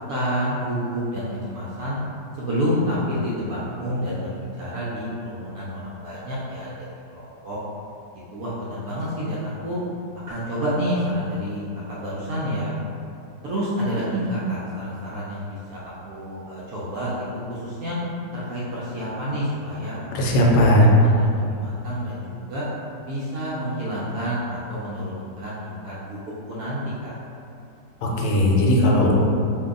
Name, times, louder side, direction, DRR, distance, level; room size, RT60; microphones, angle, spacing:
voice 1, 0.1-2.0 2.4-6.7 7.1-7.6 8.3-9.8 10.3-12.8 13.4-17.2 17.5-18.0 18.3-20.5 20.8-22.7 23.1-26.2 26.5-27.1, equal, 70° right, -8 dB, 0.9 m, -29 dB
voice 2, 20.1-20.9 28.0-29.2, equal, 75° left, -2 dB, 1.2 m, -17 dB
2.7 x 2.6 x 3.6 m, 2.6 s
omnidirectional pair, 1.9 m